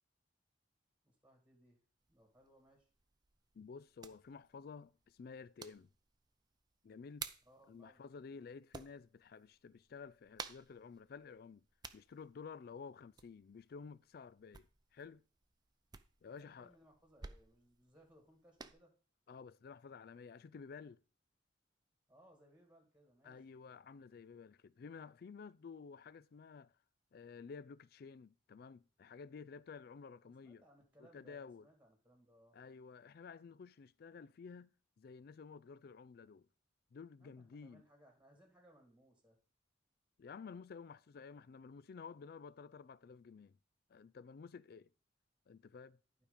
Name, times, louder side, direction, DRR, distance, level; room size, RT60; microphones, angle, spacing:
voice 1, 1.0-1.8 2.1-2.9 7.5-8.0 16.3-18.9 22.1-23.4 30.2-32.6 37.2-39.4, right 1 dB, 5° right, 2.0 m, -66 dB
sound 1, 2.0-18.7, right 5 dB, 20° right, 0.5 m, -55 dB
voice 2, 3.5-5.9 6.8-7.3 7.7-11.7 11.9-15.2 16.2-16.7 19.3-21.0 23.2-26.7 27.1-30.6 31.0-31.7 32.5-36.5 36.9-37.8 40.2-43.6 43.9-44.9 45.5-46.0, left 5 dB, 55° left, 0.3 m, -52 dB
11.5 x 4.9 x 5.0 m
head